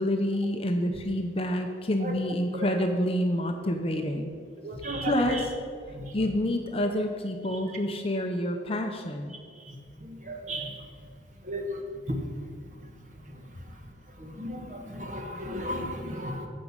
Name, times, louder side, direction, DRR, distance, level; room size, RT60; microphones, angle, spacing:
voice 1, 0.0-4.3 5.0-5.5 6.1-9.4, left 1 dB, 30° left, 4 dB, 0.7 m, -28 dB
voice 2, 4.6-5.1 5.9-6.1 9.7-9.8 10.3-10.8 11.4-11.8 12.1-12.2 14.2-16.5, equal, 40° right, 3 dB, 1.4 m, -34 dB
14.0 x 5.2 x 7.3 m, 2.1 s
head